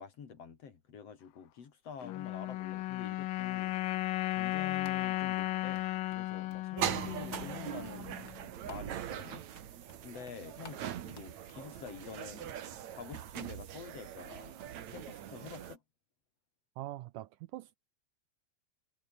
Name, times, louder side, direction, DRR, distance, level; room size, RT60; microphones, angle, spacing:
voice 1, 0.0-3.8 4.3-8.2 8.6-9.5 10.0-12.6 12.9-14.6 14.9-15.8, left 6 dB, 50° left, 3.1 m, -48 dB
sound 1, 2.0-8.4, left 17 dB, 80° left, 2.4 m, -35 dB
sound 2, 3.5-13.2, left 5 dB, 30° left, 2.5 m, -58 dB
sound 3, 6.8-15.8, right 10 dB, 60° right, 2.7 m, -41 dB
voice 2, 16.8-17.8, right 16 dB, 80° right, 2.0 m, -43 dB
omnidirectional pair, 4.1 m